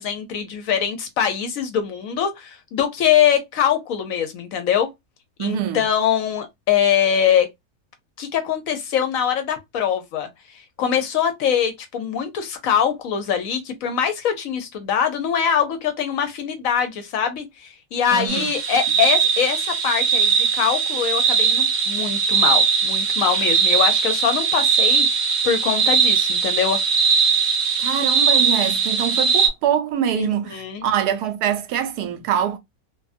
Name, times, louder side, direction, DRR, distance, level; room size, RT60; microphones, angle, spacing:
voice 1, 0.0-4.9 5.4-7.5 8.2-26.8 30.2-30.8, left 8 dB, 70° left, 0.9 m, -23 dB
voice 2, 5.4-5.8 18.1-18.6 27.8-32.6, right 9 dB, 80° right, 1.1 m, -24 dB
sound 1, 18.3-29.5, right 6 dB, 60° right, 0.9 m, -20 dB
2.6 x 2.3 x 2.4 m
omnidirectional pair, 1.7 m